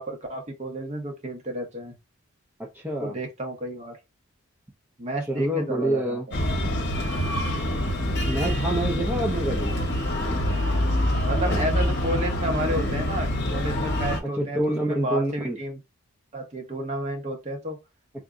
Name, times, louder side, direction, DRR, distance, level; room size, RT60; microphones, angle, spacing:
voice 1, 0.0-1.9 3.0-4.0 5.0-6.2 11.2-15.8 16.3-17.8, right 1 dB, 30° right, 0.8 m, -31 dB
voice 2, 2.7-3.1 5.3-6.3 8.2-9.7 14.4-15.6, right 1 dB, 10° right, 0.4 m, -27 dB
Breathing, 6.3-14.2, left 1 dB, 50° left, 0.9 m, -25 dB
3.6 x 2.0 x 3.6 m
head